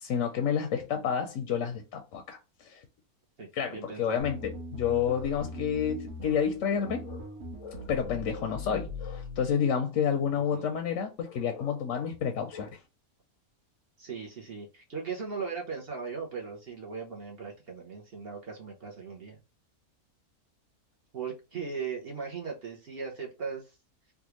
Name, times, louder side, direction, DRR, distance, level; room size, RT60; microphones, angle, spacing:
voice 1, 0.0-2.9 3.5-7.3 7.6-12.8, left 7 dB, 70° left, 0.8 m, -30 dB
voice 2, 3.4-4.3 10.5-10.7 14.0-19.4 21.1-23.6, right 5 dB, 50° right, 0.8 m, -38 dB
sound 1, 4.2-9.5, left 1 dB, 75° right, 1.4 m, -41 dB
3.4 x 2.4 x 3.0 m
omnidirectional pair, 1.6 m